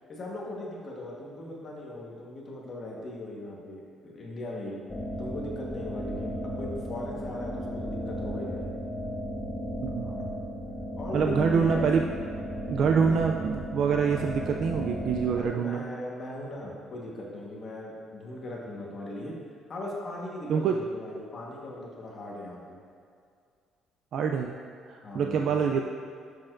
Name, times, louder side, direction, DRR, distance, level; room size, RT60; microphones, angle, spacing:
voice 1, 0.1-4.8 5.2-8.7 10.0-10.3 11.0-11.9 13.0-13.4 15.4-19.3 19.7-22.8 25.0-25.7, left 1 dB, 35° left, -3 dB, 1.2 m, -39 dB
sound 1, 4.9-15.4, equal, 10° left, 0.5 m, -35 dB
voice 2, 9.8-10.2 11.1-12.0 12.3-15.8 20.5-20.8 24.1-24.6 24.9-25.8, right 6 dB, 50° right, 2 dB, 0.3 m, -26 dB
11.0 x 6.5 x 2.5 m, 2.2 s
cardioid pair, 165°, 0 cm